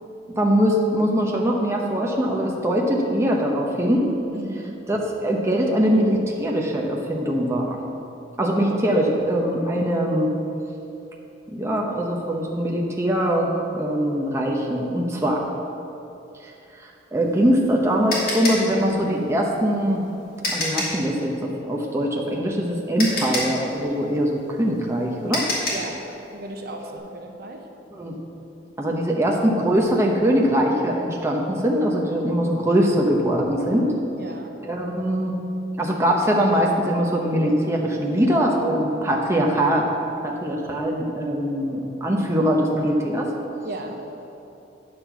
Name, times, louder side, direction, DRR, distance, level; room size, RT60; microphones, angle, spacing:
voice 1, 0.3-4.1 4.9-7.8 8.4-10.3 11.5-15.4 17.1-20.0 20.5-25.5 28.0-28.2 28.8-33.9 34.6-35.3 35.8-39.9 40.2-43.3, equal, 15° right, -1 dB, 0.8 m, -22 dB
voice 2, 4.3-4.8 25.7-26.0 26.3-27.7 34.2-34.5 43.6-44.0, right 1 dB, 55° right, 3 dB, 0.9 m, -35 dB
sound 1, 17.2-21.1 22.5-22.6 23.0-26.0, left 2 dB, 50° left, 2.5 m, -28 dB
9.2 x 5.3 x 7.1 m, 2.8 s
head